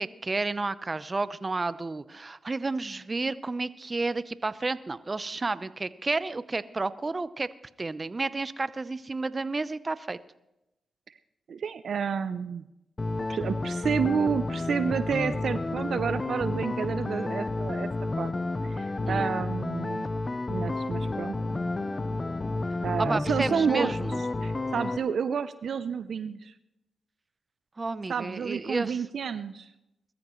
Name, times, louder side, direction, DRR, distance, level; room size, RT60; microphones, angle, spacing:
voice 1, 0.0-7.5 7.8-10.2 19.1-19.3 23.0-24.2 27.8-29.0, right 3 dB, 35° right, 15 dB, 0.7 m, -31 dB
voice 2, 11.5-12.6 13.3-17.9 18.2-18.3 18.6-20.1 20.5-21.4 22.8-24.0 24.4-26.5 28.1-29.7, right 6 dB, 70° right, 13 dB, 0.6 m, -30 dB
sound 1, 13.0-25.0, left 2 dB, 35° left, 0.7 m, -31 dB
21.5 x 14.0 x 3.1 m, 0.89 s
supercardioid pair, 50°, 0 cm